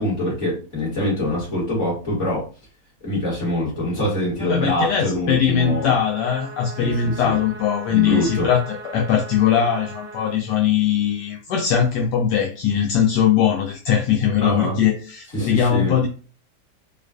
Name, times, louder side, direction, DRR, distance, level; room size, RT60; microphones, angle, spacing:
voice 1, 0.0-2.5 3.0-5.9 6.8-7.4 7.9-8.5 14.4-14.8 15.3-15.9, left 1 dB, 45° left, -5 dB, 2.1 m, -24 dB
voice 2, 4.4-16.1, left 8 dB, 80° left, 1 dB, 1.2 m, -20 dB
sound 1, 5.6-10.4, right 2 dB, 65° right, 0.9 m, -39 dB
4.3 x 2.4 x 2.4 m, 0.37 s
omnidirectional pair, 1.8 m